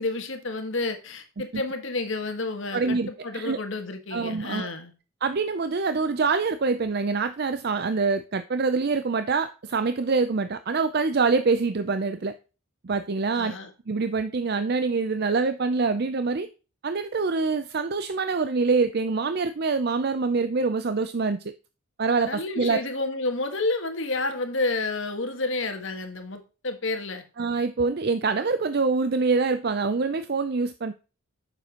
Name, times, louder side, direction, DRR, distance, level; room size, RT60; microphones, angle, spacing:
voice 1, 0.0-4.9 13.3-13.7 22.2-27.2, left 2 dB, 60° left, 1.6 m, -30 dB
voice 2, 2.7-3.6 4.1-4.7 5.2-12.3 12.8-13.5 13.9-16.5 16.8-21.5 22.0-22.8 27.4-30.9, right 4 dB, 45° right, 0.5 m, -25 dB
9.3 x 6.9 x 2.9 m
head